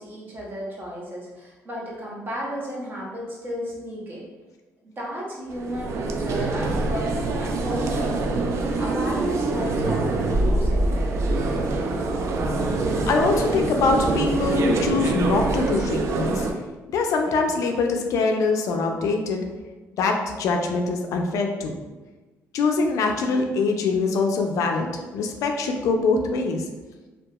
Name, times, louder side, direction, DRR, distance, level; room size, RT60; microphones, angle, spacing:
voice 1, 0.0-4.2 4.8-11.1, equal, 35° right, -4 dB, 0.9 m, -34 dB
sound 1, 5.5-16.5, right 2 dB, 55° right, 0.3 m, -24 dB
voice 2, 13.1-16.5 16.9-19.4 20.0-21.7 22.5-26.7, left 4 dB, 70° left, 4 dB, 0.3 m, -23 dB
2.7 x 2.3 x 2.3 m, 1.2 s
cardioid pair, 85°, 6 cm